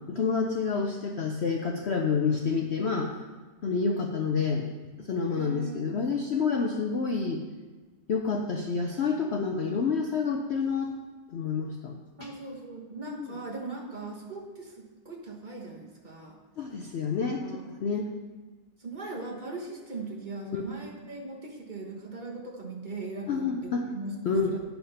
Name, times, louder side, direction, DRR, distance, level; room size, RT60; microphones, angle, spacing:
voice 1, 0.0-3.1 3.6-4.7 5.0-7.4 8.1-10.9 11.3-11.9 12.2-12.3 13.1-13.3 16.6-18.1 20.5-20.6 23.3-23.9 24.3-24.5, left 5 dB, 55° left, 2 dB, 0.8 m, -28 dB
voice 2, 5.3-5.9 12.2-16.3 17.1-17.7 18.8-24.6, right 3 dB, 30° right, -2 dB, 1.4 m, -39 dB
10.0 x 5.8 x 5.6 m, 1.3 s
omnidirectional pair, 1.7 m